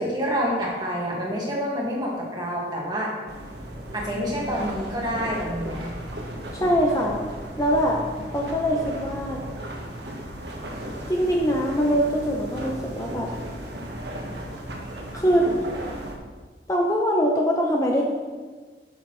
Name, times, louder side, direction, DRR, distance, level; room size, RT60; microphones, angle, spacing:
voice 1, 0.0-3.1 3.9-5.9, equal, 25° right, -3 dB, 1.8 m, -27 dB
sound 1, 3.3-16.2, right 1 dB, 75° right, 1.3 m, -35 dB
voice 2, 6.5-7.2 7.6-8.0 8.3-9.4 11.1-13.3 15.1-15.5 16.7-18.0, equal, 20° left, -1 dB, 0.7 m, -22 dB
12.0 x 6.7 x 3.2 m, 1.4 s
head